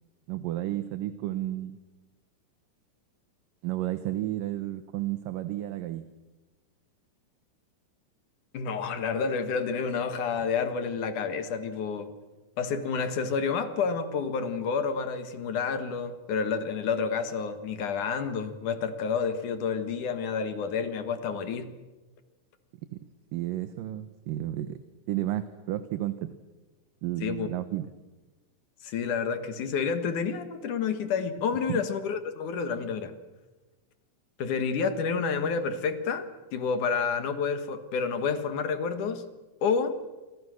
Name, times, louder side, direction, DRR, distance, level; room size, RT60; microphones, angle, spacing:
voice 1, 0.3-1.8 3.6-6.1 23.3-24.8 25.1-26.3 27.0-27.9 31.7-31.8, right 14 dB, 75° right, 11 dB, 2.6 m, -32 dB
voice 2, 8.5-12.1 12.6-21.7 27.2-27.5 28.8-33.1 34.4-36.2 36.5-39.2 39.6-40.0, left 5 dB, 65° left, 9 dB, 2.9 m, -29 dB
28.0 x 26.0 x 6.4 m, 1.2 s
omnidirectional pair, 4.0 m